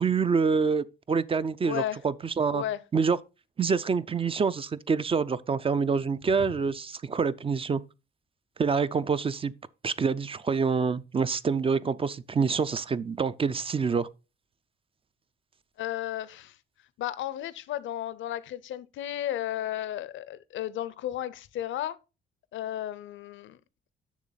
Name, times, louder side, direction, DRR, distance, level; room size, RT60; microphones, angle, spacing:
voice 1, 0.0-2.6 2.9-3.2 3.6-7.8 8.6-9.5 9.8-14.1, right 5 dB, 30° right, 0.4 m, -26 dB
voice 2, 1.6-2.0 2.5-2.8 15.8-16.6 17.0-22.0 22.5-23.6, left 12 dB, 75° left, 0.6 m, -33 dB
7.2 x 6.1 x 4.0 m
cardioid pair, 90°, 20 cm